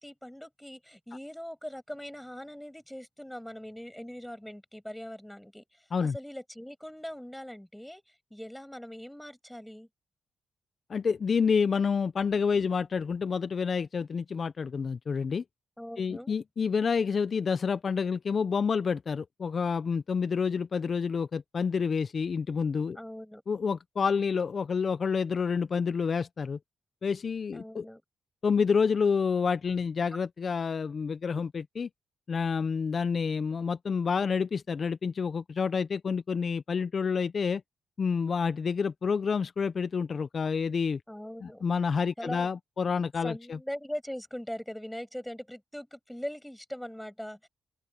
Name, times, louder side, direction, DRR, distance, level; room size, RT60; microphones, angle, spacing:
voice 1, 0.0-5.6 6.0-8.0 8.3-9.9 15.8-16.3 23.0-23.4 27.5-28.0 41.1-41.6 42.2-42.5 43.2-47.5, equal, 5° left, 7.2 m, -41 dB
voice 2, 10.9-15.4 16.0-23.0 23.5-26.6 27.0-27.9 28.4-31.9 32.3-37.6 38.0-41.0 41.4-43.6, left 5 dB, 50° left, 0.6 m, -28 dB
open air
cardioid pair, 70°, 0 cm